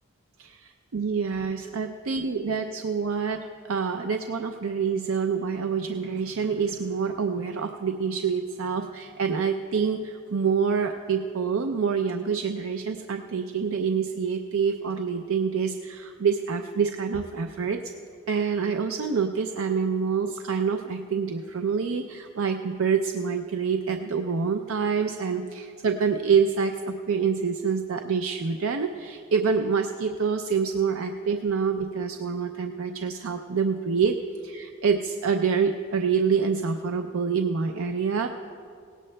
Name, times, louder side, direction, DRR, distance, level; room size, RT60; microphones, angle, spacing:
voice 1, 0.4-17.8 18.3-34.2 34.4-38.3, right 6 dB, 85° right, 5 dB, 0.5 m, -26 dB
18.5 x 17.0 x 2.2 m, 2.4 s
head